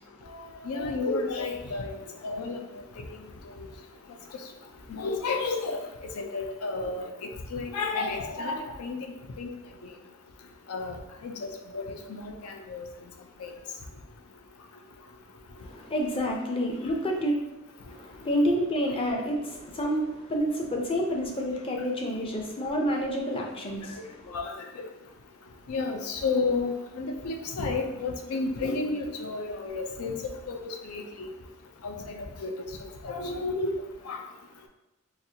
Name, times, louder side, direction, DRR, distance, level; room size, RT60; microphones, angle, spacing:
voice 1, 0.3-2.0 2.2-2.6 3.0-3.1 4.9-5.8 6.2-7.1 7.5-9.5 10.7-11.0 11.2-12.8 13.4-13.5 24.3-24.5 25.7-30.2 30.5-31.3 31.8-32.5 32.8-33.7 34.1-34.2, left 3 dB, 85° left, 3 dB, 0.5 m, -31 dB
voice 2, 15.6-17.3 17.9-24.3, equal, 25° left, 0 dB, 0.5 m, -29 dB
4.0 x 2.4 x 2.7 m, 0.99 s
head